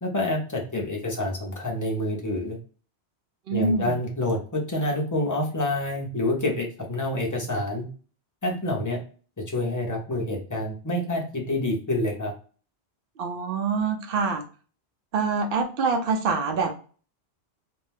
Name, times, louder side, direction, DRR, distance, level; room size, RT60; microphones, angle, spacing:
voice 1, 0.0-2.6 3.5-7.9 8.4-9.0 9.5-12.3, left 1 dB, 20° left, -1 dB, 0.6 m, -27 dB
voice 2, 3.5-4.0 13.2-14.4 15.1-16.7, right 4 dB, 60° right, 5 dB, 0.7 m, -25 dB
2.6 x 2.2 x 3.2 m, 0.40 s
omnidirectional pair, 1.1 m